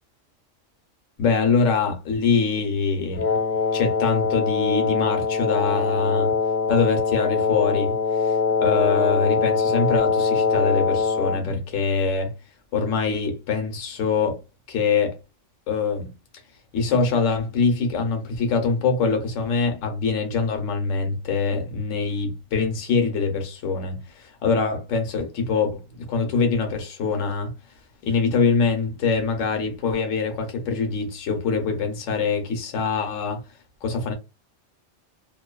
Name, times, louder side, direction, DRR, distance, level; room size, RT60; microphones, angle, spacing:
voice 1, 1.2-3.3 3.7-6.4 6.7-12.3 12.7-14.4 14.7-15.1 15.7-16.1 16.7-27.5 28.0-33.4 33.8-34.1, left 4 dB, 80° left, 1.1 m, -24 dB
Wind instrument woodwind instrument, 3.1-11.5, left 5 dB, 65° left, 0.4 m, -22 dB
2.6 x 2.2 x 2.3 m
omnidirectional pair, 1.3 m